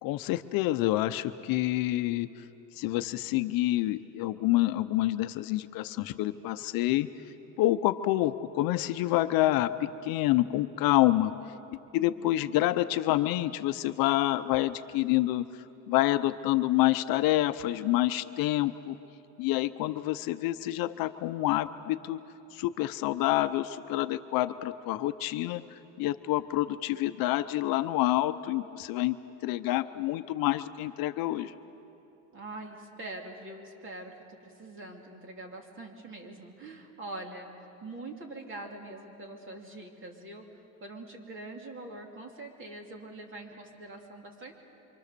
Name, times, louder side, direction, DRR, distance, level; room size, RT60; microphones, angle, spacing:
voice 1, 0.0-2.4 2.7-7.1 7.6-11.3 11.9-15.4 15.9-19.0 19.4-22.2 22.5-29.2 29.4-31.5, left 16 dB, 65° left, 11 dB, 0.8 m, -27 dB
voice 2, 12.0-12.5 32.3-44.5, right 2 dB, 35° right, 2 dB, 3.1 m, -44 dB
27.0 x 25.0 x 6.8 m, 2.8 s
cardioid pair, 140°, 37 cm